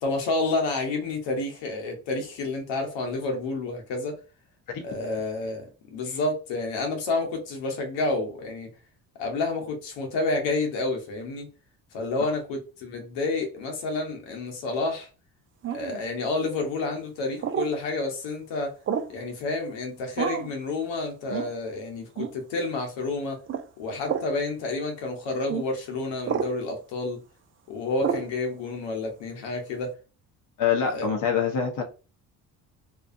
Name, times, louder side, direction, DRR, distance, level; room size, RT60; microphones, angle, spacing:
voice 1, 0.0-4.2 4.8-8.7 9.2-11.5 11.9-15.1 15.7-18.7 19.1-23.4 23.8-27.2 27.7-29.9 30.9-31.1, left 3 dB, 70° left, 1.0 m, -29 dB
sound 1, 15.6-16.0 17.4-17.7 18.9-19.2 20.2-20.5 21.3-21.5 22.2-22.4 23.5-23.7 24.0-24.3 25.5-25.7 26.2-26.5 28.0-28.3, right 8 dB, 30° right, 0.4 m, -29 dB
voice 2, 30.6-31.8, left 7 dB, 45° left, 0.7 m, -25 dB
2.6 x 2.2 x 2.5 m
hypercardioid pair, 60°, 45 cm